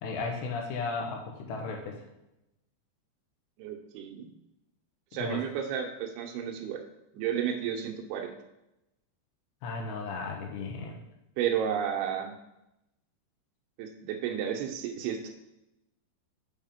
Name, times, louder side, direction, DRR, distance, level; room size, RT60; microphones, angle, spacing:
voice 1, 0.0-2.0 5.2-5.4 9.6-11.0, left 4 dB, 75° left, 2 dB, 2.9 m, -35 dB
voice 2, 3.6-4.3 5.1-6.8 7.1-8.3 11.4-12.3 13.8-15.3, right 8 dB, 75° right, 3 dB, 2.5 m, -32 dB
7.4 x 4.9 x 5.1 m, 0.89 s
omnidirectional pair, 5.3 m